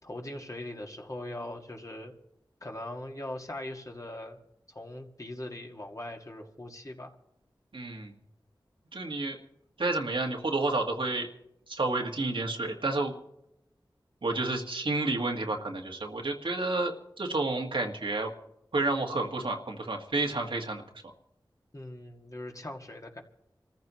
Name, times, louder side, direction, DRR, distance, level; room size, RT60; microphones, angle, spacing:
voice 1, 0.0-2.1 2.6-4.4 4.7-7.1 21.7-23.2, left 1 dB, 40° left, 1 dB, 2.1 m, -40 dB
voice 2, 7.7-8.2 8.9-9.4 9.8-11.3 11.7-13.1 14.2-18.3 18.7-20.8, right 2 dB, 80° right, 2 dB, 1.8 m, -30 dB
27.5 x 14.5 x 3.1 m, 0.82 s
wide cardioid pair, 45°, 9 cm